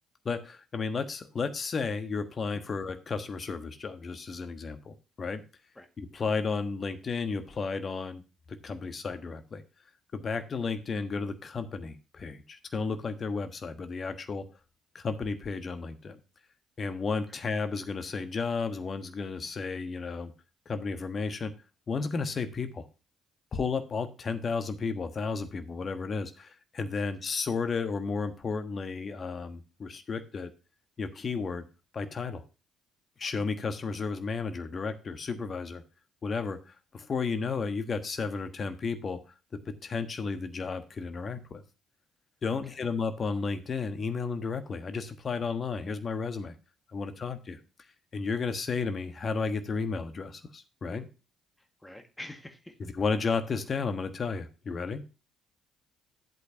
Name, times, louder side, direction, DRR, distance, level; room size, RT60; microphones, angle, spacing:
voice 1, 0.2-5.4 6.0-8.2 8.5-9.6 10.1-14.4 14.9-16.2 16.8-20.3 20.6-21.5 21.9-22.9 23.5-30.5 31.0-31.6 31.9-32.4 33.2-35.8 36.2-39.2 39.7-41.6 42.4-46.5 46.9-47.6 48.1-51.1 52.8-55.0, left 4 dB, 40° left, 9 dB, 1.3 m, -33 dB
voice 2, 42.5-42.9 51.6-52.7, left 1 dB, 10° left, 6 dB, 1.8 m, -47 dB
11.0 x 8.3 x 2.8 m, 0.31 s
figure-of-eight pair, 45°, 0 cm